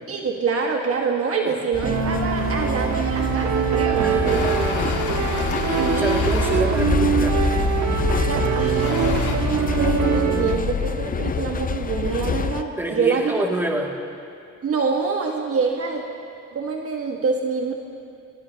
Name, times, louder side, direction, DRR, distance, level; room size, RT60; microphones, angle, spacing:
voice 1, 0.1-4.4 4.8-5.0 5.8-6.1 8.3-13.5 14.6-16.0 16.5-17.7, right 5 dB, 50° right, 1 dB, 1.5 m, -25 dB
sound 1, 1.7-12.6, left 6 dB, 30° left, 0.6 m, -26 dB
sound 2, 1.8-10.6, right 7 dB, 65° right, 1.5 m, -23 dB
voice 2, 4.0-7.4 12.8-14.0, right 1 dB, 5° right, -1 dB, 2.3 m, -28 dB
sound 3, 4.3-6.7 7.5-7.8 8.5-9.4, left 6 dB, 75° left, 1.6 m, -31 dB
24.0 x 19.5 x 2.9 m, 2.5 s
cardioid pair, 90°, 30 cm